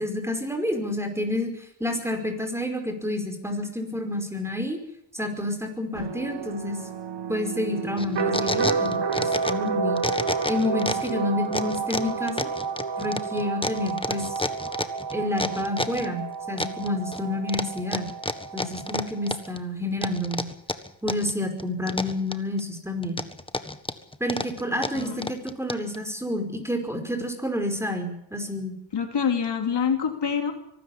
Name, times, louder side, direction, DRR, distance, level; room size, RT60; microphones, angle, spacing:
voice 1, 0.0-4.8 5.1-6.8 7.3-10.0 10.5-12.5 13.0-14.3 15.1-18.1 18.5-20.5 21.0-23.2 24.2-28.7, left 1 dB, 5° right, 4 dB, 5.1 m, -29 dB
sound 1, 6.0-19.5, right 5 dB, 65° right, 2.1 m, -30 dB
sound 2, 8.0-9.7 10.0-11.1 11.5-16.1 16.6-17.2 17.5-19.6 20.0-21.3 21.6-22.6 23.0-26.0, left 2 dB, 10° left, 1.5 m, -30 dB
voice 2, 24.9-25.3 28.9-30.5, left 7 dB, 65° left, 5 dB, 3.2 m, -26 dB
23.5 x 13.0 x 9.9 m, 0.80 s
cardioid pair, 80°, 44 cm